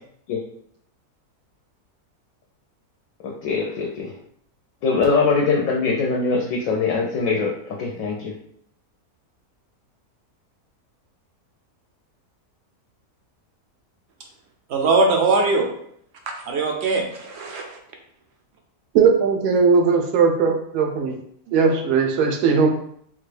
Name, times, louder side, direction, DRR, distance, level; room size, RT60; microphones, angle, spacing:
voice 1, 3.2-4.1 4.8-8.3, left 4 dB, 70° left, -1 dB, 0.9 m, -22 dB
voice 2, 14.7-15.7 16.5-17.7, right 3 dB, 65° right, 3 dB, 0.6 m, -20 dB
voice 3, 18.9-21.2 21.5-22.7, right 5 dB, 85° right, 3 dB, 1.2 m, -18 dB
3.7 x 2.3 x 3.3 m, 0.67 s
omnidirectional pair, 1.6 m